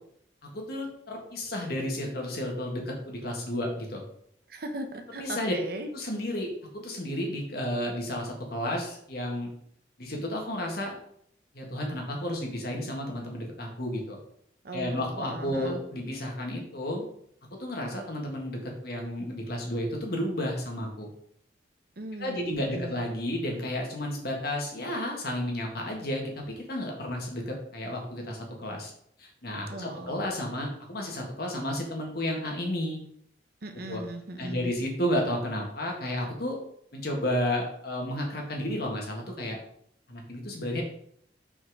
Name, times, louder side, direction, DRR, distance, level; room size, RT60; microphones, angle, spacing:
voice 1, 0.4-4.0 5.2-5.5 5.9-9.5 10.0-10.9 11.5-14.2 14.7-17.0 17.6-21.1 22.2-28.9 29.2-33.0 33.9-34.0 34.4-36.6 36.9-39.6 40.1-40.8, left 1 dB, 55° left, 0 dB, 1.7 m, -32 dB
voice 2, 4.5-5.9 14.6-15.8 22.0-23.0 29.7-30.2 33.6-34.7, right 1 dB, 55° right, 6 dB, 0.9 m, -38 dB
5.7 x 4.3 x 4.7 m, 0.68 s
head